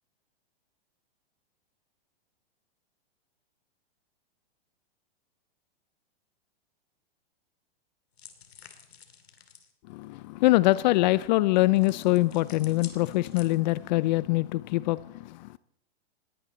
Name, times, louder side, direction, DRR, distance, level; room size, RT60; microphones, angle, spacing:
sound 1, 8.2-9.7 11.8-13.9, left 7 dB, 90° left, 2.8 m, -50 dB
voice 1, 9.9-15.6, left 19 dB, 45° left, 0.5 m, -24 dB
20.0 x 17.0 x 4.1 m
hypercardioid pair, 125°, 30 cm